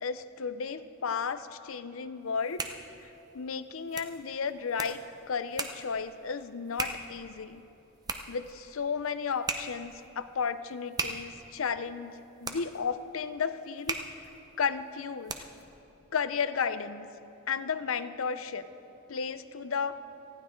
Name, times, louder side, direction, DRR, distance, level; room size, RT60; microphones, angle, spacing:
voice 1, 0.0-2.6 3.0-5.0 5.3-7.6 8.3-13.9 14.6-15.3 16.1-17.1 17.5-18.7 19.1-20.0, left 6 dB, 80° left, 13 dB, 0.6 m, -33 dB
sound 1, 2.2-15.7, right 3 dB, 20° right, 0.7 m, -40 dB
18.5 x 15.0 x 3.8 m, 2.8 s
head